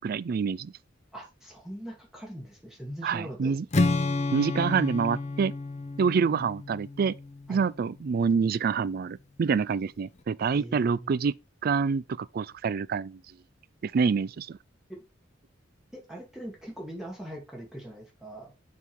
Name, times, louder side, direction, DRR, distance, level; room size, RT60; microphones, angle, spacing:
voice 1, 0.0-0.7 3.0-3.7 4.3-5.5 6.0-7.2 7.5-11.3 11.6-13.2 13.8-14.6, right 5 dB, 50° right, 0.3 m, -26 dB
voice 2, 1.1-3.5 7.5-7.6 10.5-11.2 14.9-15.0 15.9-18.5, right 1 dB, 5° right, 2.3 m, -41 dB
Strum, 3.7-7.8, left 2 dB, 35° left, 0.7 m, -30 dB
8.3 x 3.7 x 4.6 m
head